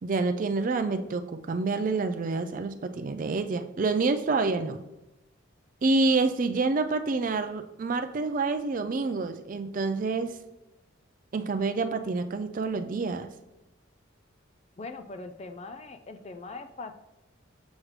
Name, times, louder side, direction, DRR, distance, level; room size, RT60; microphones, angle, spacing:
voice 1, 0.0-4.8 5.8-10.3 11.3-13.3, right 3 dB, 40° right, 9 dB, 0.3 m, -27 dB
voice 2, 14.8-16.9, left 3 dB, 30° left, 8 dB, 0.4 m, -41 dB
7.2 x 6.4 x 3.2 m, 0.96 s
head